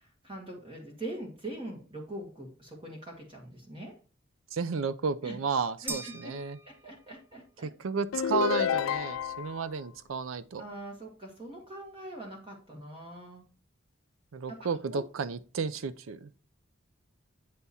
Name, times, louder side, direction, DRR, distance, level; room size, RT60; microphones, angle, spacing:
voice 1, 0.0-3.9 5.2-5.4 5.8-6.3 6.6-7.7 10.6-13.4 14.5-15.0, right 1 dB, 25° right, 1.6 m, -43 dB
voice 2, 4.5-6.6 7.6-10.6 14.3-16.3, right 5 dB, 90° right, 0.5 m, -32 dB
sound 1, 5.9-7.3, right 2 dB, 10° right, 0.4 m, -42 dB
sound 2, 8.1-9.6, left 8 dB, 85° left, 0.4 m, -29 dB
8.4 x 3.5 x 4.1 m
head